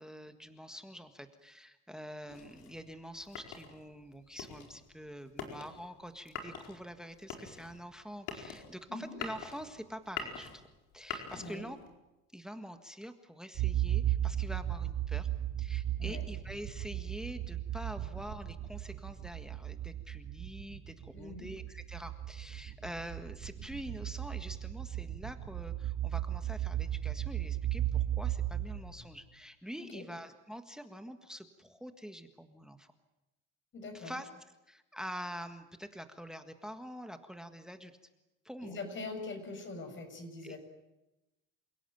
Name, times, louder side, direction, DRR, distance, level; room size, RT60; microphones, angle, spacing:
voice 1, 0.0-10.6 10.9-11.8 12.3-15.3 15.6-32.9 33.9-34.3 34.7-38.0 38.5-38.8 40.4-40.6, equal, ahead, 8 dB, 1.6 m, -46 dB
sound 1, 2.3-11.9, left 6 dB, 75° left, 4.8 m, -45 dB
voice 2, 11.3-11.7 16.0-16.2 21.1-21.5 29.8-30.0 33.7-34.1 38.6-40.6, left 3 dB, 40° left, 6 dB, 6.7 m, -43 dB
sound 2, 13.5-29.2, right 12 dB, 65° right, 2.9 m, -35 dB
28.5 x 17.0 x 9.2 m, 0.99 s
cardioid pair, 125°, 31 cm